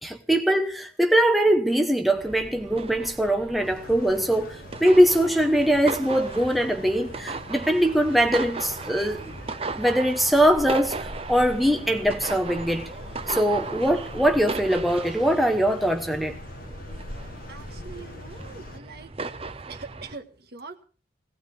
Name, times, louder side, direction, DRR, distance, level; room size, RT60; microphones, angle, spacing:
voice 1, 0.0-9.2 9.7-12.9 13.3-16.4, right 1 dB, ahead, 1.0 m, -22 dB
sound 1, 2.1-20.2, right 3 dB, 30° right, 0.8 m, -37 dB
sound 2, 3.6-18.8, left 2 dB, 50° left, 1.3 m, -43 dB
voice 2, 17.5-19.1 19.7-20.8, right 4 dB, 55° right, 1.8 m, -42 dB
18.5 x 17.5 x 3.5 m
head